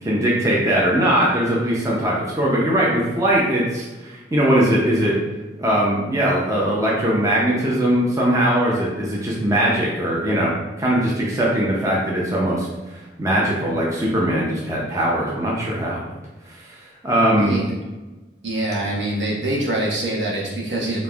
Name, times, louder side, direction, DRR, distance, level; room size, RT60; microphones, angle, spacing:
voice 1, 0.0-5.2 5.6-10.5 10.8-16.0 16.5-17.6, right 1 dB, 20° right, -5 dB, 0.6 m, -20 dB
voice 2, 18.4-21.0, right 1 dB, 70° right, -4 dB, 1.0 m, -24 dB
5.1 x 2.6 x 2.4 m, 1.1 s
head